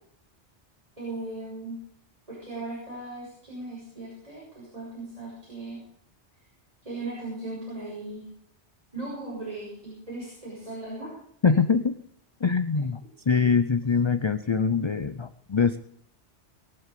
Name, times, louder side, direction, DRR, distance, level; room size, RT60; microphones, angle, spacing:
voice 1, 1.0-1.8 2.3-5.8 6.8-8.2 8.9-11.1 13.3-13.4, right 2 dB, 30° right, -6 dB, 6.5 m, -37 dB
voice 2, 11.4-11.9 12.4-15.8, left 5 dB, 35° left, 12 dB, 0.5 m, -23 dB
21.5 x 7.7 x 6.8 m, 0.65 s
omnidirectional pair, 1.2 m